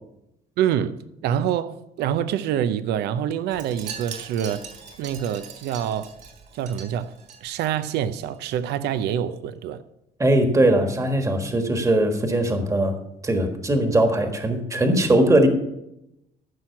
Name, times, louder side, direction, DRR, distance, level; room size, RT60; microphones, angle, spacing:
voice 1, 0.6-4.7 5.0-6.1 6.5-7.1 7.4-9.8, right 9 dB, 80° right, 0.6 m, -26 dB
Wind chime, 3.5-8.0 8.3-8.6 8.8-8.9, right 6 dB, 50° right, 3.1 m, -41 dB
voice 2, 10.2-13.0 13.2-15.5, right 1 dB, 20° right, 1.5 m, -20 dB
14.5 x 6.1 x 5.9 m
cardioid pair, 110°, 17 cm